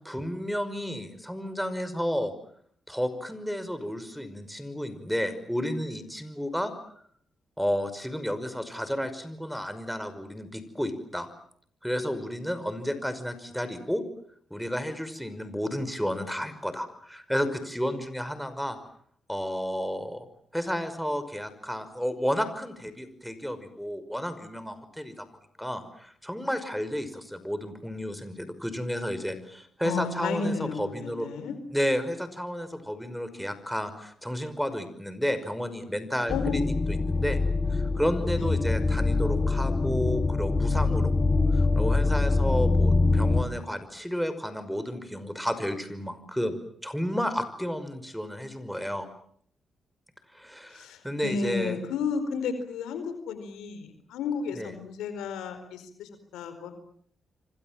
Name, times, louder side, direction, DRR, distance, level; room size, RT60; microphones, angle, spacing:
voice 1, 0.1-2.3 2.9-6.7 7.6-11.3 11.8-14.0 14.5-18.8 19.3-20.3 20.5-25.3 25.6-31.3 31.7-37.4 37.7-41.1 41.5-49.1 50.3-51.8 54.5-54.7, equal, ahead, 10 dB, 5.7 m, -32 dB
voice 2, 29.8-31.6 36.3-36.6 38.4-38.5 50.7-56.7, left 5 dB, 90° left, 10 dB, 4.6 m, -32 dB
sound 1, 36.3-43.4, left 3 dB, 30° left, 3.3 m, -24 dB
29.0 x 25.0 x 7.6 m, 0.64 s
supercardioid pair, 55°, 0 cm